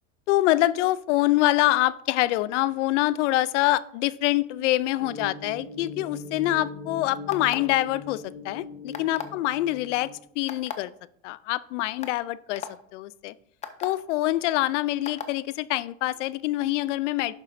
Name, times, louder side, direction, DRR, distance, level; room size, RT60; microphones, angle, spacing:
voice 1, 0.3-10.9 11.2-13.3 13.8-17.3, left 16 dB, 70° left, 19 dB, 0.5 m, -25 dB
sound 1, 5.0-10.1, left 3 dB, 15° right, 1.3 m, -40 dB
sound 2, 7.3-7.8 8.9-9.4 10.5-10.7 11.5-11.6 12.0-12.2 12.6-12.7 13.6-13.9 15.1-15.3, left 8 dB, 20° left, 0.5 m, -35 dB
11.0 x 7.3 x 2.6 m, 0.66 s
supercardioid pair, 140°, 37 cm